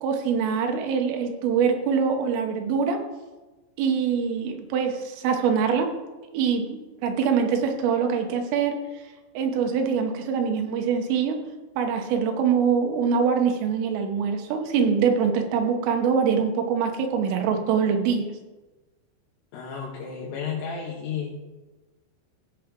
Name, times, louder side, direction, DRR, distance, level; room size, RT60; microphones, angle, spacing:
voice 1, 0.0-3.0 3.8-5.9 6.3-8.8 9.4-11.4 11.8-18.3, right 6 dB, 85° right, 4 dB, 3.8 m, -24 dB
voice 2, 19.5-21.4, left 6 dB, 85° left, -4 dB, 4.1 m, -32 dB
16.5 x 7.3 x 3.7 m, 1.2 s
omnidirectional pair, 5.7 m